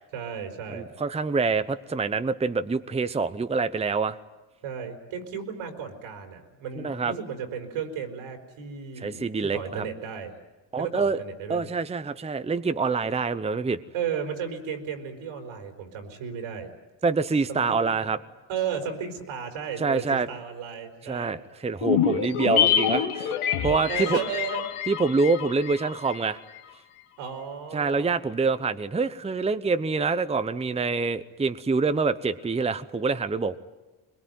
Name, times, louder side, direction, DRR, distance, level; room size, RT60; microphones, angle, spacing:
voice 1, 0.1-0.9 4.6-10.3 10.8-11.7 13.9-16.7 17.5-17.8 18.5-21.4 22.2-22.4 23.8-24.7 27.2-28.1, right 7 dB, 85° right, 5 dB, 4.8 m, -34 dB
voice 2, 0.7-4.2 6.8-7.1 9.0-9.8 10.7-11.2 11.5-13.8 17.0-18.2 19.8-20.3 21.0-23.4 23.6-24.2 24.9-26.4 27.7-33.6, right 4 dB, 15° right, 11 dB, 0.8 m, -26 dB
sound 1, 21.8-26.3 26.6-26.7, left 9 dB, 85° left, 1.9 m, -26 dB
23.0 x 21.5 x 9.4 m, 1.1 s
cardioid pair, 100°, 48 cm